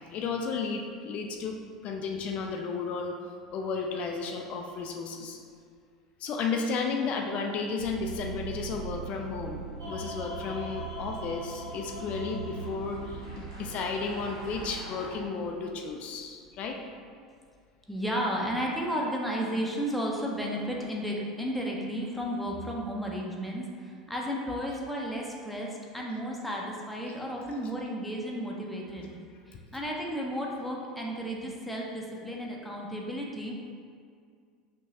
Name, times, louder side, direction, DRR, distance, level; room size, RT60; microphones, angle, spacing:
voice 1, 0.1-3.2 3.5-5.4 6.2-16.8, left 4 dB, 40° left, 2 dB, 0.4 m, -33 dB
Vehicle, 7.8-15.1, right 5 dB, 90° right, 0.7 m, -42 dB
sound 1, 9.8-15.2, equal, 65° right, 1.1 m, -42 dB
voice 2, 17.9-29.1 29.5-33.6, equal, ahead, -2 dB, 0.7 m, -33 dB
5.4 x 2.9 x 2.8 m, 2.1 s
figure-of-eight pair, 75°, 3 cm